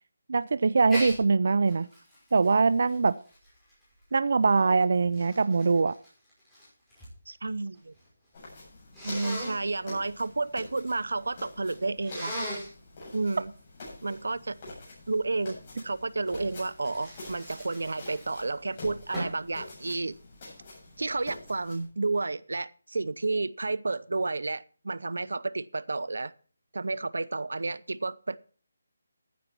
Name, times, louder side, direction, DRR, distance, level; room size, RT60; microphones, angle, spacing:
voice 1, 0.3-1.9 2.3-3.1 4.1-5.9, right 4 dB, 55° right, 0.5 m, -23 dB
Sneeze, 0.9-1.2 1.7-4.0 4.7-7.2 7.4-8.1 8.9-9.6 12.0-12.7 16.3-18.5 19.1-19.5, equal, 5° left, 5.5 m, -38 dB
voice 2, 7.3-7.9 9.0-12.4 13.1-13.5 14.0-14.6 15.1-15.6 15.8-20.2 21.0-26.3 26.7-28.4, right 3 dB, 85° right, 0.7 m, -31 dB
sound 1, 8.3-21.9, left 2 dB, 25° left, 7.9 m, -46 dB
14.5 x 9.6 x 4.5 m
hypercardioid pair, 175°, 0 cm